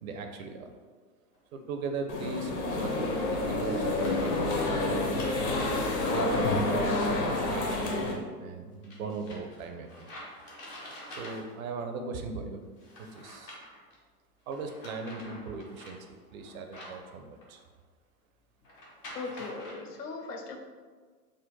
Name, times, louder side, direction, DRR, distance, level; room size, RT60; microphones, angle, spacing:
voice 1, 0.0-0.7 1.5-5.4 6.1-10.1 11.1-12.6 13.0-13.6 14.5-17.6, right 4 dB, 60° right, 5 dB, 0.6 m, -38 dB
sound 1, 1.3-1.4 3.0-3.1 3.7-6.9 8.8-11.7 12.8-14.0 14.5-17.6 18.6-19.7, left 1 dB, 15° left, 0.4 m, -46 dB
sound 2, 2.1-8.1, left 2 dB, 45° left, 0.9 m, -29 dB
voice 2, 19.1-20.6, left 4 dB, 75° left, 3 dB, 0.7 m, -39 dB
3.8 x 2.1 x 3.8 m, 1.5 s
hypercardioid pair, 105°, 48 cm